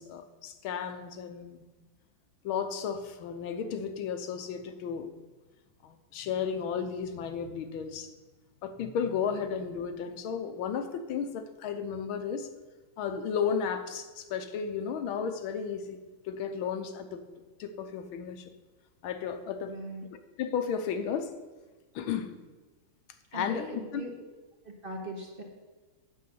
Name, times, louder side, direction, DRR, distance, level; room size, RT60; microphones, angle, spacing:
voice 1, 0.0-1.7 2.4-5.1 5.8-8.1 8.6-12.5 13.0-16.0 16.2-17.3 17.6-18.5 19.0-19.7 20.1-21.3 21.9-22.3 23.3-24.0, left 7 dB, 80° left, 9 dB, 1.6 m, -33 dB
voice 2, 19.7-20.0 23.3-24.1 24.6-25.4, right 1 dB, 30° right, 0 dB, 1.5 m, -40 dB
9.4 x 7.0 x 7.0 m, 1.3 s
omnidirectional pair, 2.3 m